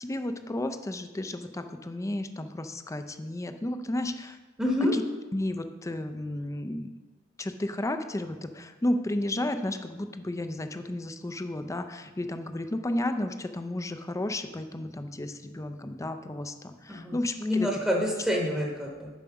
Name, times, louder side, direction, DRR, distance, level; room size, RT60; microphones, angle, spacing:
voice 1, 0.0-4.4 4.9-5.0 5.3-6.9 7.4-17.7 18.6-18.7, left 1 dB, 15° left, 8 dB, 0.5 m, -33 dB
voice 2, 4.6-5.0 16.9-19.1, left 1 dB, 5° right, -2 dB, 1.0 m, -27 dB
7.1 x 5.2 x 5.8 m, 1.3 s
head